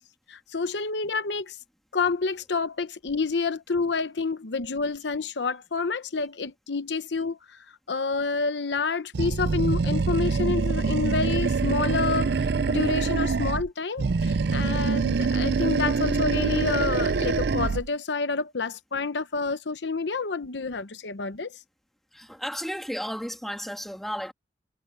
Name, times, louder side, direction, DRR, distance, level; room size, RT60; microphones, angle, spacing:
voice 1, 0.3-1.6 1.9-7.6 7.9-21.6, left 4 dB, 75° left, 0.9 m, -28 dB
Animal, 9.1-13.7 14.0-17.9, right 4 dB, 65° right, 0.5 m, -25 dB
voice 2, 22.1-24.3, equal, ahead, 2.1 m, -33 dB
head